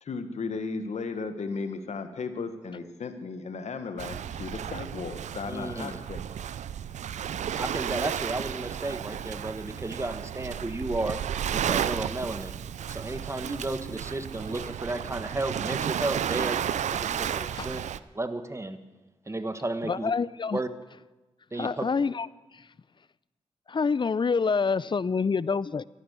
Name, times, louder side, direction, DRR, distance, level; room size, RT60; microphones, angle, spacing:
voice 1, 0.0-6.2, left 4 dB, 70° left, 8 dB, 1.5 m, -35 dB
Waves surf, 4.0-18.0, right 9 dB, 80° right, 0.5 m, -33 dB
voice 2, 5.5-6.0 7.5-11.2 11.5-12.5 12.9-16.6 16.9-17.8 18.1-18.8 19.3-20.1 20.5-20.7 21.5-21.9, right 2 dB, 25° right, 10 dB, 1.4 m, -33 dB
voice 3, 19.8-20.6 21.6-22.3 23.7-25.8, left 5 dB, 40° left, 20 dB, 0.5 m, -26 dB
13.5 x 11.5 x 8.2 m, 1.2 s
supercardioid pair, 45°, 12 cm